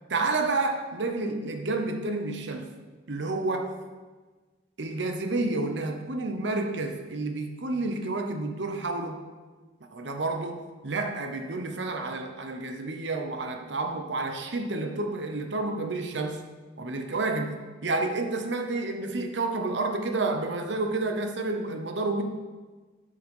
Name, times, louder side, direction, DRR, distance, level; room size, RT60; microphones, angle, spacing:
voice 1, 0.1-2.7 3.1-3.8 4.8-9.3 9.9-16.4 16.8-17.6 17.8-22.2, right 2 dB, 70° right, 5 dB, 0.9 m, -30 dB
8.1 x 5.4 x 5.4 m, 1.3 s
head